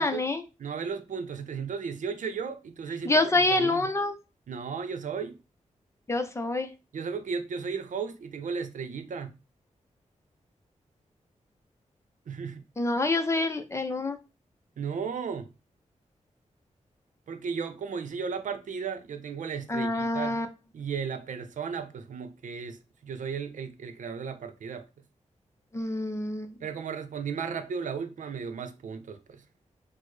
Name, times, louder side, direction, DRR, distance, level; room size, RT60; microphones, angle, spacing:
voice 1, 0.0-0.4 3.0-4.1 6.1-6.7 12.8-14.2 19.7-20.5 25.7-26.6, left 2 dB, 20° left, 0.5 m, -26 dB
voice 2, 0.6-3.1 3.6-3.9 4.5-5.4 6.9-9.4 12.3-12.6 14.8-15.5 17.3-20.4 20.7-24.9 26.6-29.4, right 6 dB, 85° right, 0.6 m, -35 dB
6.1 x 2.1 x 3.2 m
wide cardioid pair, 140°, 13 cm